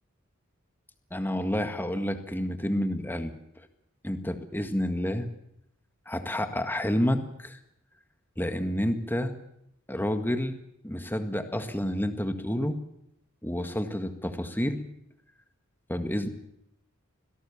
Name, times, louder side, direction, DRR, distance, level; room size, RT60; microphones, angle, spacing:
voice 1, 1.1-3.3 4.0-5.3 6.1-7.6 8.4-9.4 9.9-10.5 10.8-12.8 13.4-14.8 15.9-16.3, equal, 10° left, 7 dB, 1.8 m, -29 dB
25.0 x 17.5 x 7.2 m, 0.77 s
head